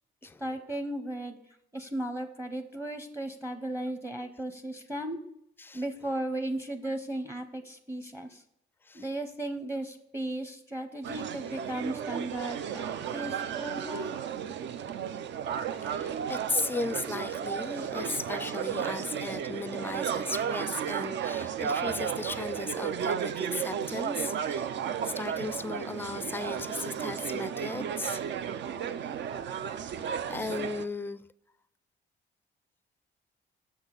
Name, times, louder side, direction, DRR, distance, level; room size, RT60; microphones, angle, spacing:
voice 1, 0.2-1.4 1.7-5.2 5.7-8.4 8.9-14.1, right 1 dB, 10° right, 0.7 m, -36 dB
sound 1, 11.0-30.9, right 8 dB, 65° right, 0.5 m, -34 dB
voice 2, 15.7-24.7 25.0-28.2 29.8-30.0 30.3-31.2, left 3 dB, 10° left, 0.4 m, -36 dB
6.9 x 6.2 x 3.8 m
cardioid pair, 90°, 20 cm